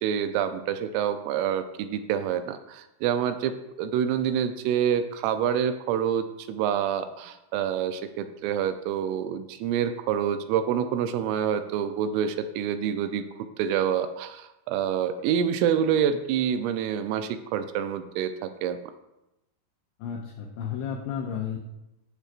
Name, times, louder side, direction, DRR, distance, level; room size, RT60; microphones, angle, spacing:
voice 1, 0.0-13.3 13.6-18.8, right 8 dB, 85° right, 9 dB, 3.1 m, -27 dB
voice 2, 20.0-21.6, left 8 dB, 90° left, 0 dB, 2.4 m, -32 dB
10.5 x 7.1 x 2.4 m, 0.92 s
omnidirectional pair, 5.7 m